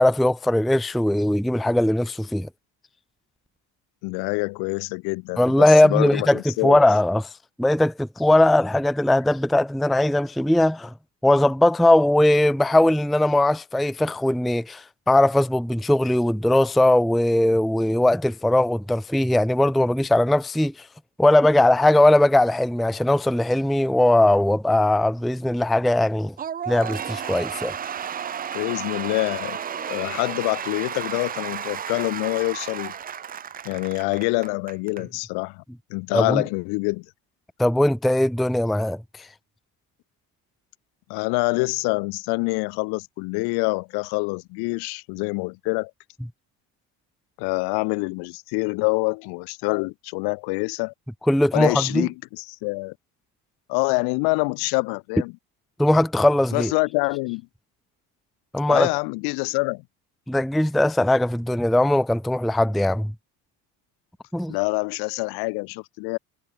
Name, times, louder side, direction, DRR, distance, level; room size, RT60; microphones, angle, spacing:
voice 1, 0.0-2.5 5.4-7.3 7.6-10.9 11.2-20.7 21.2-26.3 26.7-27.8 36.1-36.4 37.6-39.0 51.3-52.1 55.8-56.7 58.5-58.9 60.3-63.1 64.3-64.5, left 1 dB, ahead, 0.5 m, -19 dB
voice 2, 4.0-6.8 28.5-29.6 29.9-32.9 33.6-35.6 35.9-37.0 41.1-45.9 47.4-50.9 51.5-52.9 53.7-55.3 56.5-57.4 58.7-59.8 64.5-66.2, left 31 dB, 70° left, 3.2 m, -26 dB
Cheering / Applause / Crowd, 26.4-35.0, right 8 dB, 20° right, 1.2 m, -33 dB
cardioid pair, 170°, 41 cm